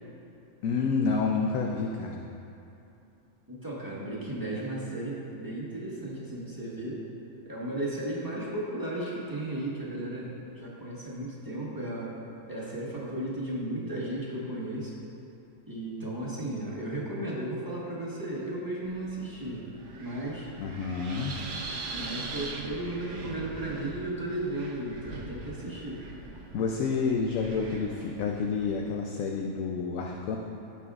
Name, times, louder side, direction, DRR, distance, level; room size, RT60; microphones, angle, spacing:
voice 1, 0.6-2.2 20.6-21.3 26.5-30.4, left 5 dB, 70° left, 1 dB, 1.0 m, -29 dB
voice 2, 3.5-7.0 7.4-12.1 12.5-14.9 15.6-19.6 20.0-20.5 21.9-26.0, right 1 dB, 15° right, -7 dB, 1.5 m, -35 dB
Wind, 18.8-29.0, right 3 dB, 60° right, 1.1 m, -42 dB
16.5 x 5.8 x 2.5 m, 2.8 s
omnidirectional pair, 1.5 m